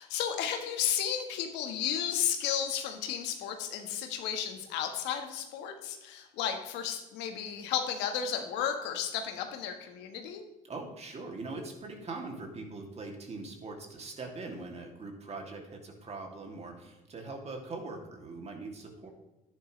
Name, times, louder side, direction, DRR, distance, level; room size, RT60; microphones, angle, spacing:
voice 1, 0.0-10.4, left 9 dB, 75° left, 5 dB, 1.6 m, -33 dB
voice 2, 10.6-19.1, right 3 dB, 35° right, 2 dB, 2.8 m, -42 dB
11.0 x 10.5 x 3.3 m, 1.0 s
supercardioid pair, 70°, 18 cm